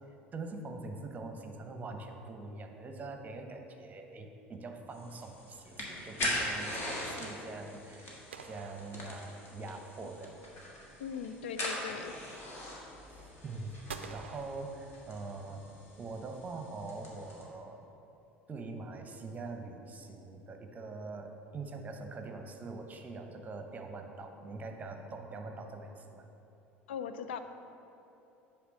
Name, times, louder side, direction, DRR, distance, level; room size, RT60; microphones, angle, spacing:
voice 1, 0.3-10.4 13.1-15.6 16.0-17.8 18.5-26.3, right 3 dB, 25° right, 5 dB, 0.9 m, -43 dB
sound 1, 4.9-17.4, left 1 dB, 40° left, 1.8 m, -41 dB
sound 2, 8.3-9.8 13.9-15.5, right 5 dB, 75° right, 0.4 m, -48 dB
voice 2, 11.0-12.1 26.9-27.4, left 7 dB, 65° left, 9 dB, 0.4 m, -39 dB
9.3 x 3.5 x 6.1 m, 2.9 s
figure-of-eight pair, 70°, 6 cm